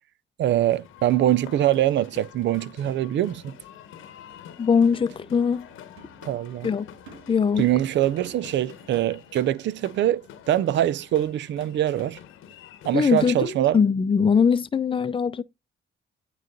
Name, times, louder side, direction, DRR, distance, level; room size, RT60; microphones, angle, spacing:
voice 1, 0.4-3.5 6.2-6.7 7.6-12.2 12.8-13.8, right 12 dB, 65° right, 0.5 m, -23 dB
sound 1, 0.6-13.3, left 9 dB, 90° left, 1.1 m, -46 dB
voice 2, 4.6-5.7 6.6-6.9 7.3-7.7 12.9-15.4, left 6 dB, 25° left, 0.5 m, -21 dB
sound 2, 4.6-9.2 9.5-9.6, right 6 dB, 90° right, 1.7 m, -53 dB
9.0 x 3.2 x 3.9 m
cardioid pair, 90°, 20 cm